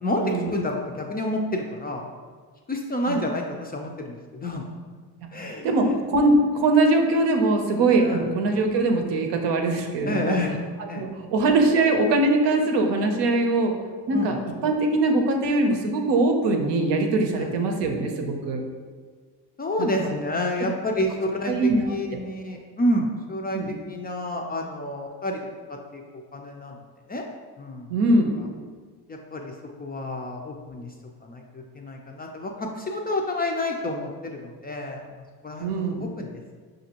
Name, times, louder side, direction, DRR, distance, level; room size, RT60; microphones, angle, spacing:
voice 1, 0.0-2.0 2.7-4.6 5.3-5.7 8.0-8.2 10.1-10.5 10.9-11.1 14.1-14.4 17.4-17.5 19.6-21.5 21.9-23.6 23.9-25.5 25.9-26.8 27.1-27.2 27.6-27.9 29.1-29.5 29.8-30.9 31.2-35.0 35.4-36.6, left 1 dB, 25° left, 1 dB, 0.3 m, -29 dB
voice 2, 5.6-10.4 10.8-13.7 14.1-14.4 14.6-18.6 19.8-20.2 21.5-21.9 23.5-23.7 27.9-28.3 35.6-36.0, right 2 dB, 70° right, 3 dB, 0.7 m, -22 dB
5.1 x 2.6 x 2.8 m, 1.5 s
supercardioid pair, 75°, 44 cm